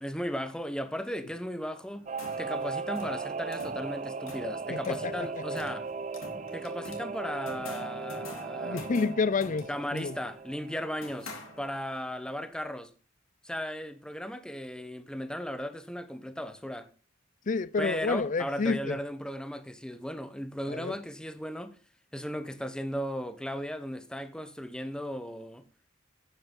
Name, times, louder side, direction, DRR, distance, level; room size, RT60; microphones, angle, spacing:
voice 1, 0.0-2.1 2.4-5.9 6.5-8.9 9.7-11.3 11.6-12.9 13.4-16.9 17.8-21.8 22.1-25.6, equal, 5° left, 0.9 m, -36 dB
sound 1, 1.9-12.0, left 2 dB, 90° left, 3.1 m, -48 dB
Singing / Musical instrument, 2.1-12.1 12.4-12.5, right 4 dB, 35° right, 0.5 m, -37 dB
voice 2, 4.7-5.1 8.6-10.1 17.5-19.0 20.7-20.9, left 4 dB, 40° left, 0.5 m, -29 dB
9.1 x 8.5 x 5.3 m
head